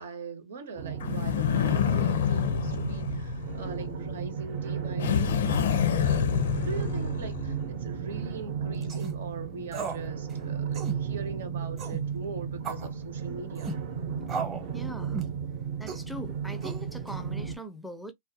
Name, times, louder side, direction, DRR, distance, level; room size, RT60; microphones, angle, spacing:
voice 1, 0.0-5.5 6.0-13.7, right 3 dB, 85° right, 0.8 m, -41 dB
sound 1, 0.8-17.6, right 7 dB, 55° right, 0.6 m, -34 dB
sound 2, 1.0-4.1 5.0-7.7, left 8 dB, 80° left, 0.5 m, -27 dB
sound 3, 8.8-9.1 9.7-10.0 10.3-10.4 10.7-11.0 11.8-12.0 12.6-12.9 13.6-13.8 14.3-14.7 15.1-15.4 15.9-16.1 16.6-17.1, right 5 dB, 25° right, 0.8 m, -35 dB
voice 2, 14.7-15.2 15.8-18.1, equal, ahead, 0.4 m, -41 dB
2.3 x 2.1 x 2.7 m
hypercardioid pair, 135°, 0 cm